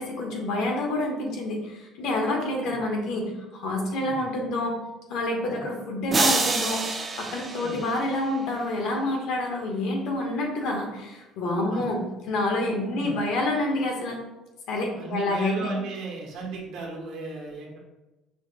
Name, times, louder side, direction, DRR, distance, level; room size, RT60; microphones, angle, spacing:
voice 1, 0.0-4.8 5.1-14.2 14.7-15.7, left 2 dB, 70° left, 1 dB, 0.9 m, -28 dB
sound 1, 6.1-8.5, right 3 dB, 25° right, 0.4 m, -27 dB
voice 2, 14.9-17.8, right 3 dB, 70° right, -2 dB, 1.0 m, -36 dB
5.5 x 2.0 x 2.8 m, 1.0 s
cardioid pair, 135°, 0 cm